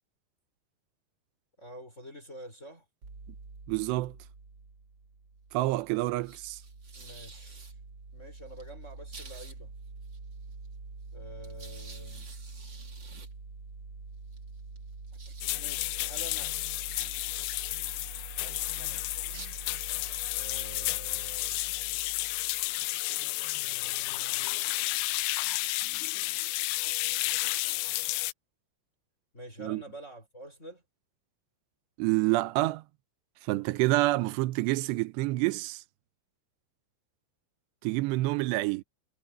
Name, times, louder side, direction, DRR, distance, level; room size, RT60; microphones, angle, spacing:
voice 1, 1.6-2.9 6.9-7.7 8.1-9.7 11.1-12.3 15.5-16.6 18.4-19.0 20.3-21.6 23.5-24.5 29.3-30.8, right 1 dB, 15° left, 5.5 m, -47 dB
sound 1, 3.0-22.9, right 3 dB, 30° right, 2.4 m, -45 dB
voice 2, 3.7-4.2 5.5-6.6 29.6-29.8 32.0-32.8 33.4-35.8 37.8-38.8, right 19 dB, 80° right, 2.8 m, -28 dB
sound 2, 15.4-28.3, left 22 dB, 85° left, 2.4 m, -32 dB
omnidirectional pair, 5.3 m